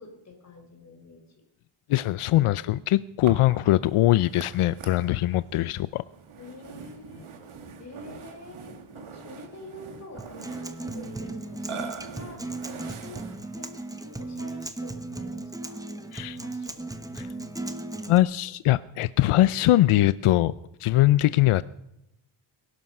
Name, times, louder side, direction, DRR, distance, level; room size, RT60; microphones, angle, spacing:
voice 1, 0.0-1.4 6.4-7.3 7.8-12.4 12.8-13.2 13.6-16.0 16.4-16.9 18.4-18.6 21.2-21.4, left 1 dB, 35° left, 3 dB, 4.1 m, -47 dB
voice 2, 1.9-6.0 16.1-16.4 17.2-17.3 18.1-20.5 20.8-21.6, left 15 dB, 85° left, 17 dB, 0.6 m, -22 dB
Burping eructation, 3.2-13.9, right 5 dB, 80° right, 2.1 m, -43 dB
Acoustic guitar, 10.2-18.2, right 2 dB, 5° right, 0.9 m, -36 dB
22.0 x 11.5 x 5.4 m, 0.84 s
wide cardioid pair, 170°, 49 cm